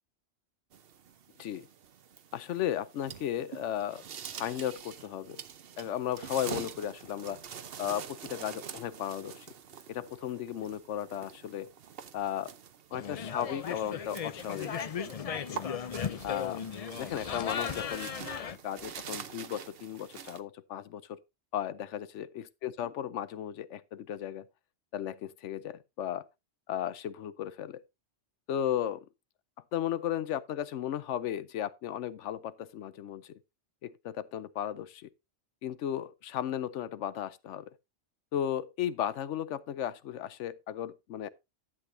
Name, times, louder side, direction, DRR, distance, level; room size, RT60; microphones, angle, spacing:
sound 1, 0.7-20.4, right 8 dB, 55° right, 0.9 m, -46 dB
voice 1, 2.3-4.0 4.4-5.4 5.8-7.4 7.8-9.5 9.9-11.7 12.1-12.5 12.9-15.7 16.2-16.6 16.9-18.1 18.4-21.2 21.5-24.5 24.9-26.3 26.7-27.8 28.5-29.0 29.7-33.3 33.8-35.1 35.6-37.7 38.3-41.3, left 10 dB, 80° left, 0.9 m, -35 dB
sound 2, 12.9-18.6, left 7 dB, 50° left, 0.4 m, -36 dB
11.5 x 8.0 x 2.6 m
omnidirectional pair, 1.2 m